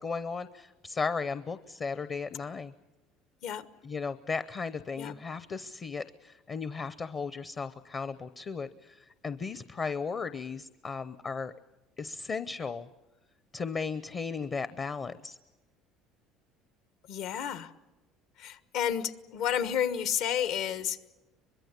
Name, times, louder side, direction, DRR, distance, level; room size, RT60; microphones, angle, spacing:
voice 1, 0.0-2.7 3.8-11.5 12.0-12.9 13.5-15.4, left 5 dB, 30° left, 13 dB, 0.7 m, -35 dB
voice 2, 17.1-17.7 18.4-21.0, left 9 dB, 65° left, 13 dB, 1.3 m, -31 dB
24.5 x 22.0 x 8.2 m, 1.1 s
cardioid pair, 145°, 0 cm